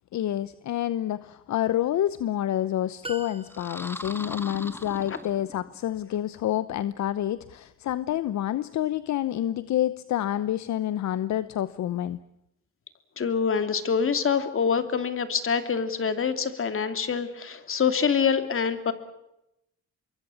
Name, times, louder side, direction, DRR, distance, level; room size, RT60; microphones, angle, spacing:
voice 1, 0.1-12.2, left 12 dB, 65° left, 15 dB, 0.9 m, -28 dB
sound 1, 3.0-4.2, right 2 dB, 20° right, 2.2 m, -41 dB
sound 2, 3.5-5.8, left 1 dB, 5° left, 2.0 m, -39 dB
voice 2, 13.2-18.9, left 6 dB, 45° left, 9 dB, 3.0 m, -25 dB
25.5 x 23.0 x 7.2 m, 0.84 s
cardioid pair, 90°, 30 cm